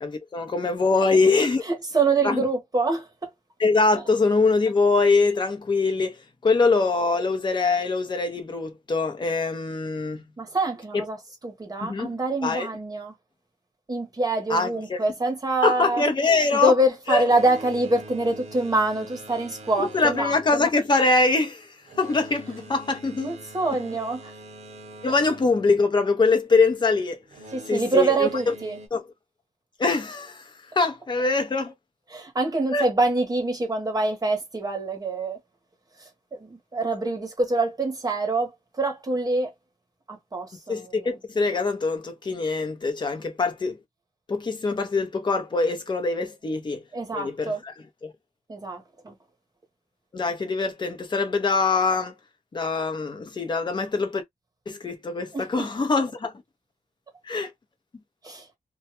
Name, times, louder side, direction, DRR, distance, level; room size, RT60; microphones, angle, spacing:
voice 1, 0.0-1.6 2.2-2.4 3.6-6.2 6.4-10.2 11.8-12.1 12.4-12.7 14.5-15.0 15.6-16.7 17.1-17.2 19.8-21.7 22.0-23.3 25.0-27.2 27.7-28.3 28.9-29.0 29.8-30.4 30.8-31.7 32.7-32.8 40.7-43.8 44.3-46.8 47.1-47.5 48.0-48.1 50.1-52.1 52.5-54.2 54.7-56.3 57.3-57.5, left 3 dB, 35° left, 0.7 m, -23 dB
voice 2, 1.6-3.3 10.4-11.2 11.4-13.1 13.9-16.0 16.5-20.4 23.2-24.3 25.1-25.2 27.5-28.8 32.1-35.4 36.0-39.5 40.1-41.1 46.9-47.6 48.5-49.1 55.3-55.7 58.2-58.5, right 2 dB, 30° right, 0.9 m, -25 dB
Boat Water vehicle, 17.1-26.5 27.3-28.9, right 1 dB, 55° right, 0.7 m, -44 dB
2.3 x 2.2 x 2.8 m
wide cardioid pair, 115°, 13 cm